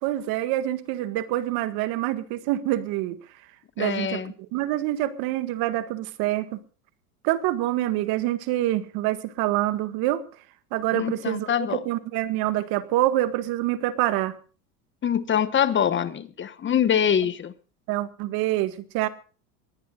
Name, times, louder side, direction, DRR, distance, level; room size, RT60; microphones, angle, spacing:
voice 1, 0.0-3.2 3.8-6.6 7.2-10.2 10.7-14.4 17.9-19.1, right 15 dB, 55° right, 11 dB, 1.8 m, -26 dB
voice 2, 3.8-4.3 10.9-11.8 15.0-17.5, left 8 dB, 25° left, 14 dB, 1.2 m, -24 dB
23.0 x 18.5 x 2.4 m, 0.37 s
hypercardioid pair, 105°, 44 cm